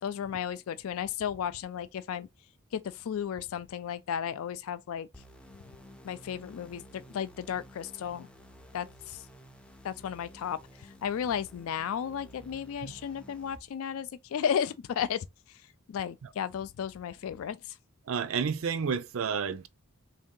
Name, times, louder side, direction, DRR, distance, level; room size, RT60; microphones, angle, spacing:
voice 1, 0.0-2.3 2.7-5.1 6.0-8.3 8.7-9.2 9.8-15.6 15.9-17.8, left 8 dB, 70° left, 0.3 m, -34 dB
sound 1, 5.1-13.6, equal, 5° left, 0.4 m, -53 dB
voice 2, 18.1-19.7, right 6 dB, 65° right, 0.4 m, -30 dB
3.4 x 2.7 x 3.6 m
head